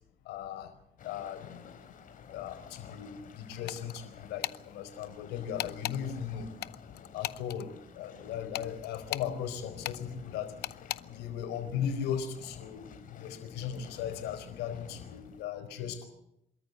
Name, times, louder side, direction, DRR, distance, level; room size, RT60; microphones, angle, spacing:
voice 1, 0.2-0.7 1.0-1.6 2.3-6.5 7.1-10.6 11.0-16.0, left 8 dB, 90° left, 8 dB, 4.7 m, -37 dB
sound 1, 1.0-15.4, left 7 dB, 55° left, 3.7 m, -51 dB
sound 2, 3.7-4.0 4.4-4.6 5.6-6.0 6.6-7.6 8.5-9.3 9.8-10.0 10.6-11.0, left 15 dB, 70° left, 0.8 m, -36 dB
26.0 x 14.0 x 8.2 m, 0.81 s
cardioid pair, 110°, 17 cm